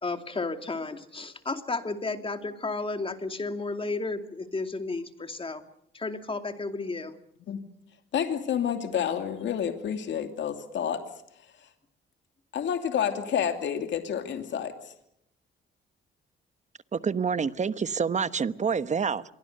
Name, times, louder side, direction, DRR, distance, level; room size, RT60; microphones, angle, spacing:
voice 1, 0.0-5.6 5.9-7.2, left 3 dB, 25° left, 2.6 m, -33 dB
voice 2, 8.1-11.0 11.6-11.7 12.5-14.9, left 8 dB, 65° left, 2.8 m, -29 dB
voice 3, 16.9-19.2, right 6 dB, 35° right, 1.1 m, -27 dB
27.0 x 23.5 x 6.7 m
cardioid pair, 90°, 20 cm